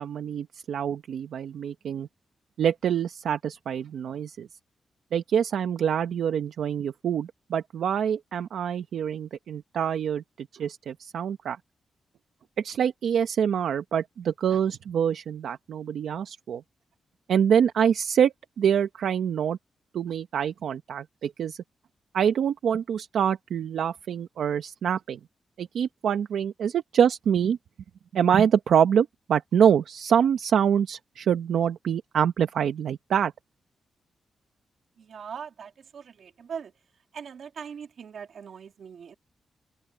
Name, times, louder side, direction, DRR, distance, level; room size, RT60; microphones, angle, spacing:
voice 1, 0.0-2.1 2.6-4.5 5.1-11.6 12.6-16.6 17.3-19.6 19.9-21.6 22.1-25.2 25.6-27.6 28.1-33.3, right 8 dB, 85° right, 0.9 m, -25 dB
voice 2, 35.0-36.7 37.1-39.1, right 7 dB, 70° right, 2.4 m, -40 dB
open air
wide cardioid pair, 115°, 0 cm